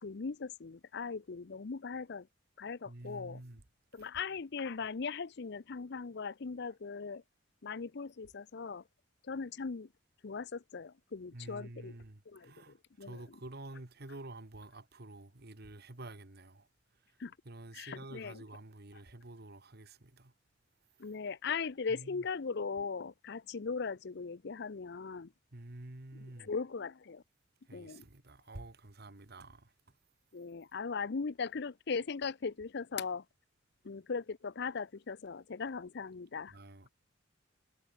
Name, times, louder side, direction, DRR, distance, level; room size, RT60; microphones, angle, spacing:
voice 1, 0.0-2.3 2.6-3.4 3.9-7.2 7.6-8.8 9.2-9.9 10.2-11.9 12.3-13.2 17.2-17.3 17.7-18.4 21.0-25.3 26.4-27.2 27.7-28.0 30.3-33.2 33.8-36.5, left 5 dB, 55° left, 0.6 m, -39 dB
voice 2, 2.9-3.6 4.0-4.1 11.3-16.7 17.5-20.3 21.9-22.2 25.5-26.5 27.7-29.7 36.5-36.9, right 2 dB, 55° right, 1.8 m, -49 dB
head